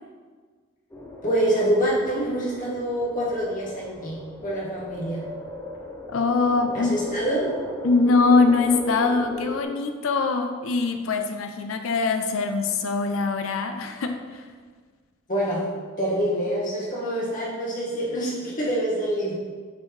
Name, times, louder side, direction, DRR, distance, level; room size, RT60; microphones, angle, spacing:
sound 1, 0.9-9.6, equal, 15° left, 0.7 m, -37 dB
voice 1, 1.2-5.2 6.7-7.5 15.3-15.7 16.0-19.3, right 1 dB, 40° left, -6 dB, 1.7 m, -26 dB
voice 2, 6.1-7.0 7.8-14.5, left 4 dB, 75° left, 6 dB, 0.5 m, -23 dB
7.3 x 4.4 x 3.2 m, 1.5 s
head